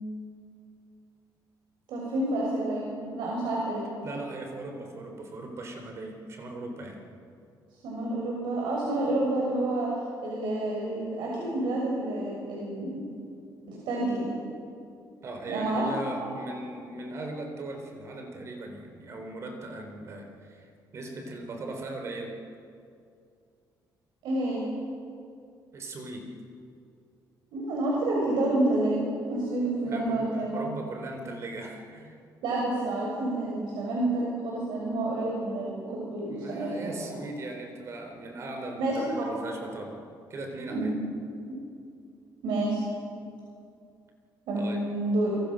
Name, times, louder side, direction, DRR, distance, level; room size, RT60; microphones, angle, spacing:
voice 1, 1.9-3.8 7.8-9.9 10.2-13.0 13.7-14.3 15.5-16.3 24.2-24.6 27.5-29.0 29.3-30.6 32.4-37.2 38.7-39.4 40.7-41.0 41.5-41.6 42.4-42.8 44.5-45.4, right 2 dB, 90° right, -3 dB, 6.5 m, -29 dB
voice 2, 4.0-7.0 15.2-22.4 25.7-26.3 29.8-32.2 36.3-40.0 40.3-40.9 44.6-44.8, right 2 dB, 40° right, 3 dB, 4.0 m, -39 dB
29.5 x 24.5 x 6.4 m, 2.5 s
cardioid pair, 175°, 8 cm